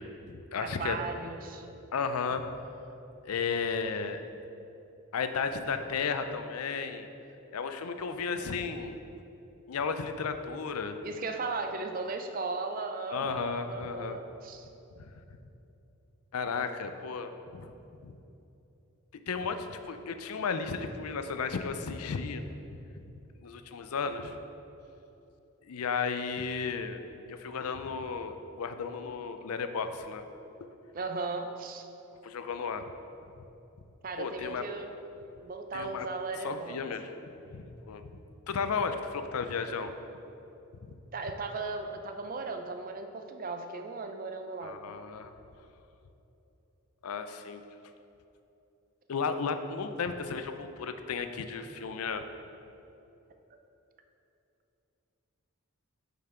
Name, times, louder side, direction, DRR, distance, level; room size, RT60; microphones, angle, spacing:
voice 1, 0.0-1.0 1.9-2.4 3.2-4.2 5.1-7.1 7.5-9.0 9.7-11.0 13.1-14.2 16.3-17.7 18.0-18.2 19.3-22.4 23.4-24.4 25.7-27.0 27.3-30.2 32.2-32.8 34.2-34.6 35.7-36.1 36.4-37.1 37.5-38.1 38.5-40.0 40.8-40.9 44.6-45.3 47.0-47.6 49.1-52.2, left 5 dB, 85° left, 9 dB, 0.5 m, -34 dB
voice 2, 0.6-1.7 8.3-8.6 11.0-14.7 30.9-31.9 34.0-35.0 35.4-36.8 41.1-44.9 53.5-53.6, right 3 dB, 40° right, 6 dB, 0.4 m, -37 dB
7.3 x 5.5 x 4.4 m, 2.9 s
head